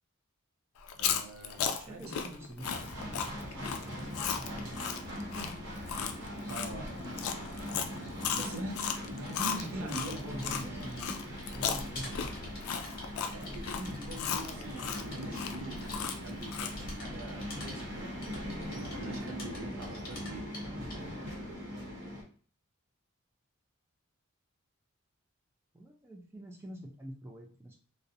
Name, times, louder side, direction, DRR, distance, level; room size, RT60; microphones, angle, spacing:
Chewing mastication, 0.8-10.6 11.0-16.9, left 7 dB, 80° left, 0.3 m, -35 dB
voice 1, 1.0-2.1 6.5-6.9 8.4-11.1 11.9-12.1 13.3-17.9 18.7-20.5, right 2 dB, 75° right, 3 dB, 0.5 m, -44 dB
voice 2, 1.7-5.5 9.2-12.6 13.3-13.5 25.7-27.8, equal, 10° right, 1 dB, 0.3 m, -47 dB
sound 1, 2.6-22.2, equal, 55° right, 0.8 m, -41 dB
sound 2, 9.8-21.2, left 1 dB, 45° left, 0.8 m, -48 dB
2.4 x 2.0 x 2.7 m, 0.43 s
head